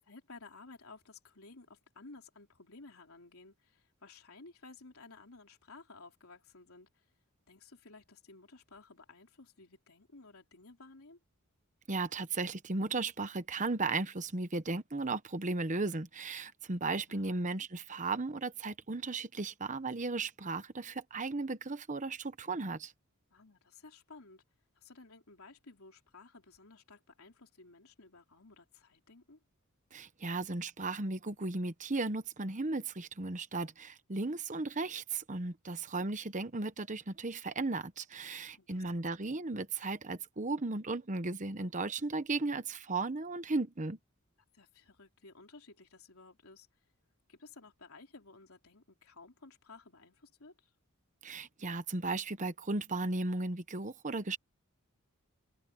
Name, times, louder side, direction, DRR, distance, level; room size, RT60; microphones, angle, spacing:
voice 1, 0.0-7.0 7.5-11.2 17.1-17.4 23.3-24.4 24.8-29.4 38.6-39.1 44.5-46.7 47.3-50.7, left 3 dB, 75° left, 3.6 m, -55 dB
voice 2, 11.9-22.9 29.9-44.0 51.2-54.4, right 3 dB, 35° right, 1.0 m, -35 dB
head